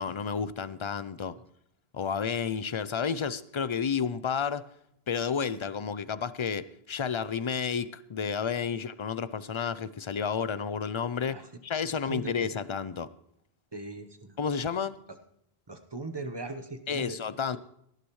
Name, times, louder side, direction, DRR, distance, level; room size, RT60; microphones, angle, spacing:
voice 1, 0.0-1.4 1.9-4.7 5.1-13.1 14.4-15.0 16.9-17.6, left 6 dB, 45° left, 0.4 m, -31 dB
voice 2, 13.7-14.3 15.7-17.2, right 3 dB, 25° right, 1.0 m, -39 dB
18.0 x 11.5 x 3.1 m
omnidirectional pair, 1.0 m